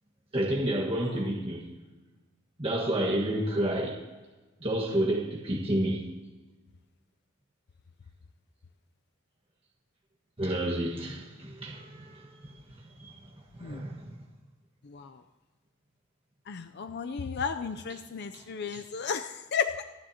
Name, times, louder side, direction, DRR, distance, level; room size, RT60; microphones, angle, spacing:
voice 1, 0.3-1.7 2.6-4.0 4.6-6.0 10.4-13.2 13.5-14.3 18.3-18.4 18.7-18.8, right 1 dB, 25° right, 1.5 m, -30 dB
voice 2, 16.5-19.8, left 6 dB, 55° left, 0.5 m, -33 dB
26.5 x 9.8 x 2.8 m
head